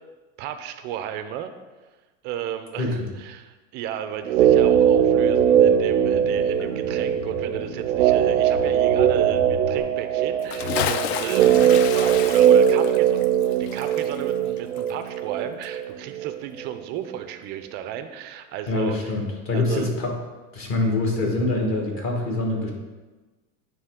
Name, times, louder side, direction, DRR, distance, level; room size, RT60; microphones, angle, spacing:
voice 1, 0.4-1.5 2.2-13.3 13.6-19.1 19.5-19.9, right 10 dB, 30° right, 9 dB, 0.4 m, -34 dB
sound 1, 4.2-16.4 16.6-16.7, right 9 dB, 90° right, 0.5 m, -20 dB
sound 2, 4.7-9.8, left 4 dB, 70° left, 1.1 m, -38 dB
Bathtub (filling or washing) / Splash splatter, 10.4-15.4 15.6-15.7, left 9 dB, 55° left, 0.5 m, -31 dB
voice 2, 18.7-20.2 20.5-22.7, left 2 dB, 35° left, 0 dB, 1.4 m, -24 dB
9.3 x 3.2 x 3.6 m, 1.2 s
hypercardioid pair, 125°, 39 cm